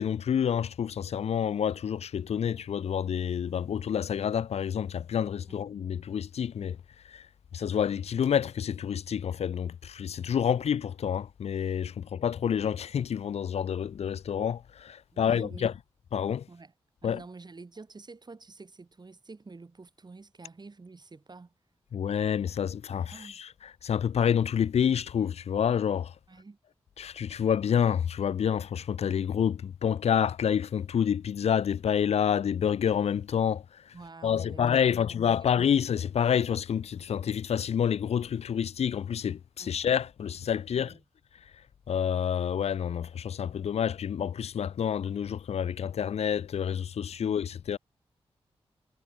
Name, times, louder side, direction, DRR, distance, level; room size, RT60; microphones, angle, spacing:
voice 1, 0.0-6.8 7.1-7.3 7.5-15.7 16.1-16.5 17.0-17.2 21.9-23.5 23.8-26.1 27.0-33.9 34.2-40.9 41.9-47.8, left 8 dB, 75° left, 0.6 m, -28 dB
voice 2, 15.1-15.7 16.5-16.7 17.0-21.5 23.1-23.4 26.3-26.6 33.9-35.1 35.4-35.5 39.6-39.7 40.7-41.0 47.2-47.4, right 3 dB, 40° right, 2.6 m, -48 dB
cardioid pair, 55°, 11 cm